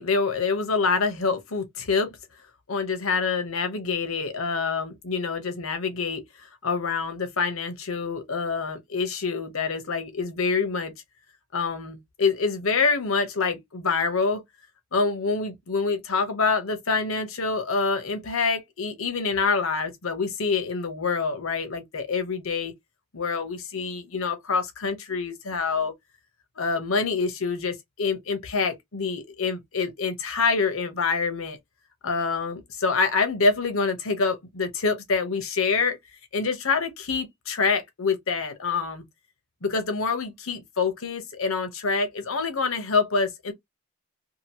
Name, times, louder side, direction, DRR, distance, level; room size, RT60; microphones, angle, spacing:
voice 1, 0.0-2.1 2.7-6.2 6.6-10.9 11.5-14.4 14.9-22.7 23.1-25.9 26.6-31.6 32.0-36.0 36.3-39.0 39.6-43.5, left 4 dB, 80° left, 0.9 m, -26 dB
2.8 x 2.6 x 2.8 m
head